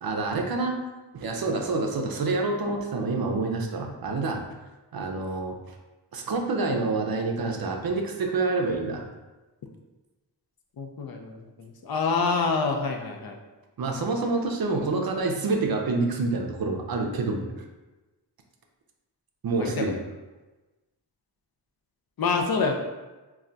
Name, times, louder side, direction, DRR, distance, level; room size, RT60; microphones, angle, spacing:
voice 1, 0.0-0.8 1.1-4.4 4.9-5.8 6.1-9.0 13.8-17.5 19.4-20.0, right 3 dB, 55° right, 2 dB, 0.5 m, -27 dB
voice 2, 10.8-13.4 19.6-19.9 22.2-22.8, left 4 dB, 55° left, 2 dB, 0.5 m, -27 dB
2.3 x 2.2 x 3.8 m, 1.1 s
wide cardioid pair, 70°, 43 cm